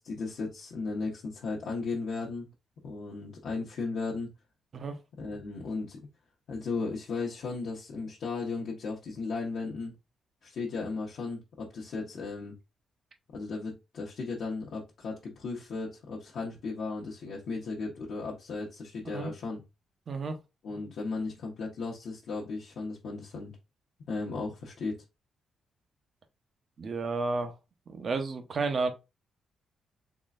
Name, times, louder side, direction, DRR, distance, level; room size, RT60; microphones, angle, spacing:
voice 1, 0.0-2.5 2.8-4.3 5.2-6.0 6.5-9.9 10.4-12.5 13.3-19.6 20.6-23.5 24.1-25.0, left 4 dB, 70° left, 0.8 m, -35 dB
voice 2, 20.1-20.4 26.8-27.5 27.9-28.9, right 3 dB, 45° right, 0.7 m, -31 dB
3.7 x 3.1 x 2.4 m
cardioid pair, 105°, 0 cm